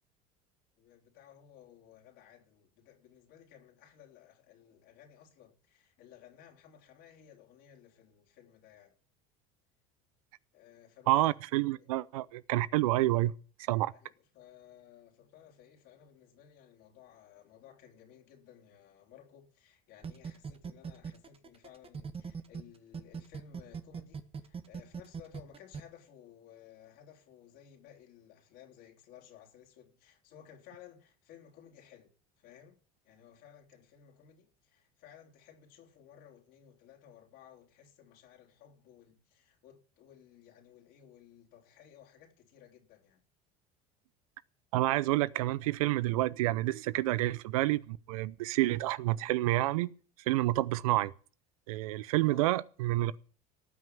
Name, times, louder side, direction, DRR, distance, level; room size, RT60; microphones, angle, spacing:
voice 1, 0.8-9.0 10.5-11.2 11.7-11.9 13.9-32.1 32.4-32.8 33.0-43.2 52.2-52.5, left 9 dB, 65° left, 3.7 m, -57 dB
voice 2, 11.1-13.3 13.7-13.9 44.7-49.9 50.3-51.1 51.7-53.2, right 17 dB, 80° right, 0.7 m, -29 dB
sound 1, 20.0-22.6 22.9-25.8, right 6 dB, 30° right, 1.6 m, -40 dB
18.0 x 6.0 x 9.4 m
hypercardioid pair, 80°, 18 cm